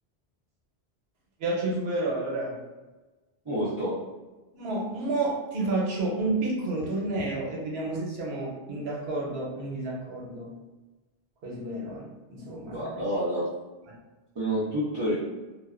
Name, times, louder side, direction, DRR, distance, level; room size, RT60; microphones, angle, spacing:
voice 1, 1.4-2.6 4.5-10.5 11.4-12.8, right 2 dB, 80° right, -3 dB, 0.9 m, -30 dB
voice 2, 3.5-4.0 12.6-13.5 14.4-15.2, equal, 35° right, -9 dB, 0.4 m, -28 dB
2.5 x 2.2 x 2.4 m, 1.2 s
omnidirectional pair, 1.0 m